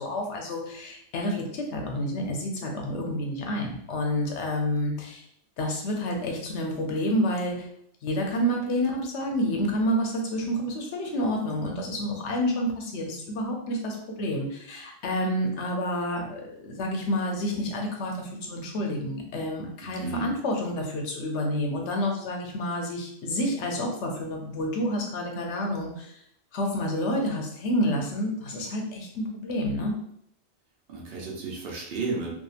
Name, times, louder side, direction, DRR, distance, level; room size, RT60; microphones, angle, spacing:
voice 1, 0.0-5.2 5.6-7.7 8.0-26.2 26.5-30.0, equal, 85° left, 1 dB, 0.9 m, -29 dB
voice 2, 19.8-20.3 30.9-32.3, right 3 dB, 60° right, -2 dB, 0.8 m, -33 dB
2.7 x 2.4 x 2.4 m, 0.70 s
omnidirectional pair, 1.1 m